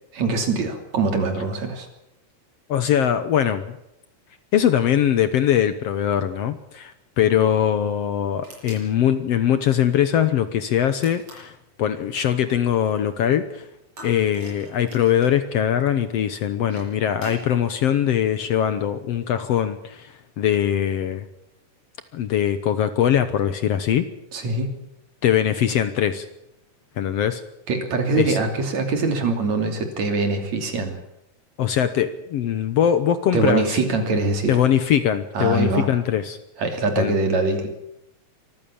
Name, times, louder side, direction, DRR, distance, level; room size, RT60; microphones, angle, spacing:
voice 1, 0.1-1.9 24.3-24.7 27.7-31.0 33.3-34.5 35.3-35.9 36.6-37.7, right 3 dB, 65° right, 6 dB, 4.1 m, -23 dB
voice 2, 2.7-3.8 4.5-11.5 11.8-13.6 14.0-21.2 22.1-24.0 25.2-26.3 27.0-27.4 28.2-28.4 31.6-33.6 34.5-36.4 37.0-37.1, left 10 dB, 65° left, 12 dB, 1.8 m, -21 dB
sound 1, 8.4-8.9 11.0-11.6 14.0-15.4 16.5-17.5, right 1 dB, 45° right, 8.3 m, -42 dB
24.0 x 14.5 x 8.7 m, 0.83 s
omnidirectional pair, 3.5 m